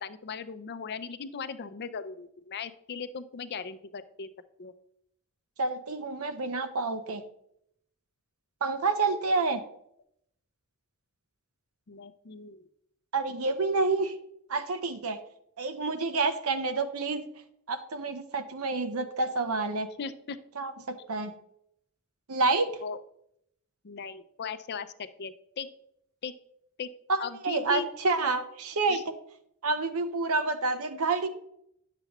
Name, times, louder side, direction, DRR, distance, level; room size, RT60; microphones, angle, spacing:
voice 1, 0.0-4.3 4.6-4.7 11.9-12.7 20.0-20.4 22.8-23.0 23.8-25.7 26.2-26.4 26.8-26.9 27.2-27.9 28.9-29.0, left 5 dB, 50° left, 12 dB, 0.5 m, -38 dB
voice 2, 5.6-7.2 8.6-9.6 13.1-14.1 14.5-15.2 15.6-17.2 17.7-19.9 20.6-20.7 21.1-21.3 22.3-22.7 27.1-29.0 29.6-31.3, right 3 dB, 80° right, 8 dB, 0.8 m, -28 dB
10.0 x 6.8 x 3.0 m, 0.74 s
head